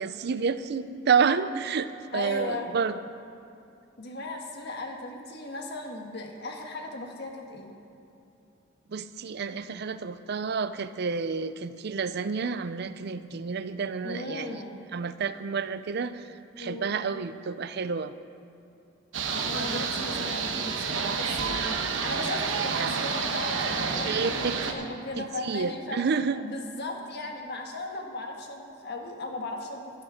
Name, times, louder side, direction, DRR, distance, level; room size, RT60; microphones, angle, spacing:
voice 1, 0.0-3.0 8.9-14.6 14.9-16.3 16.6-18.1 22.8-22.9 24.0-24.6 25.2-26.4, right 5 dB, 60° right, 13 dB, 0.5 m, -29 dB
voice 2, 2.1-2.7 4.0-7.7 14.0-14.8 16.6-16.9 19.5-26.0 26.3-30.0, left 2 dB, 60° left, 2 dB, 1.5 m, -37 dB
sound 1, 19.1-24.7, right 5 dB, 80° right, 1.1 m, -29 dB
12.5 x 12.0 x 5.0 m, 2.8 s
head